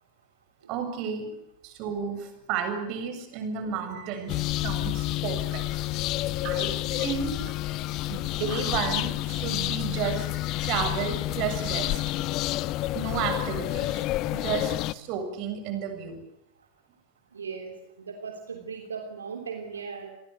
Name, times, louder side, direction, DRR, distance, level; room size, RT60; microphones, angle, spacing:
voice 1, 0.7-1.3 1.6-5.6 6.4-7.3 8.1-10.3 10.6-12.0 12.9-16.2, right 7 dB, 40° right, 7 dB, 7.4 m, -32 dB
sound 1, 4.3-14.9, left 17 dB, 40° left, 1.0 m, -29 dB
voice 2, 17.3-20.1, right 5 dB, 70° right, 4 dB, 3.1 m, -38 dB
30.0 x 22.5 x 8.3 m, 0.81 s
figure-of-eight pair, 90°, 0 cm